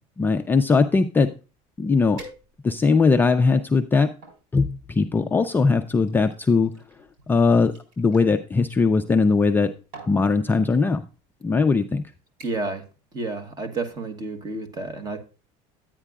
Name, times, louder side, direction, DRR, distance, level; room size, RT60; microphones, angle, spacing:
voice 1, 0.2-1.3 1.8-2.2 2.6-4.1 4.5-6.7 7.3-9.7 10.1-11.0 11.4-12.0, left 4 dB, 15° left, 6 dB, 0.4 m, -20 dB
sound 1, 2.2-2.9 3.6-4.4 5.4-8.3 9.4-9.6 9.9-10.2 11.1-11.3 11.7-12.0 12.4-12.8 13.1-13.5 13.8-13.9, right 2 dB, 75° right, 4.5 m, -47 dB
voice 2, 12.4-12.8 13.1-15.2, right 3 dB, 25° right, 7 dB, 1.3 m, -30 dB
11.0 x 9.0 x 2.3 m, 0.33 s
cardioid pair, 155°, 16 cm